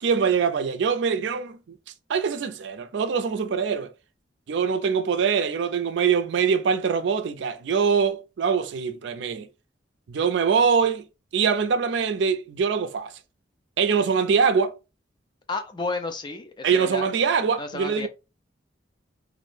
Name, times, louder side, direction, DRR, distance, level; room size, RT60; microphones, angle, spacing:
voice 1, 0.0-1.6 2.1-3.9 4.5-9.5 10.1-11.0 11.3-13.1 13.8-14.7 16.6-18.1, right 6 dB, 70° right, 0.4 m, -23 dB
voice 2, 15.5-17.1 17.6-18.1, left 3 dB, 25° left, 0.4 m, -32 dB
2.4 x 2.1 x 3.1 m
head